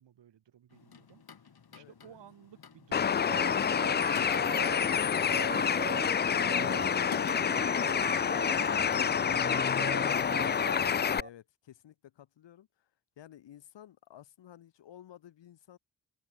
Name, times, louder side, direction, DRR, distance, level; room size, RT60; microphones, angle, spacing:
voice 1, 0.0-4.0, right 10 dB, 85° right, 6.3 m, -58 dB
sound 1, 0.7-9.1, left 6 dB, 60° left, 5.3 m, -52 dB
voice 2, 1.7-2.2 10.8-12.9 13.2-15.8, left 11 dB, 85° left, 5.1 m, -53 dB
Bird, 2.9-11.2, left 7 dB, 25° left, 0.4 m, -28 dB
sound 2, 3.3-11.3, right 3 dB, 25° right, 1.7 m, -41 dB
cardioid pair, 50°, 42 cm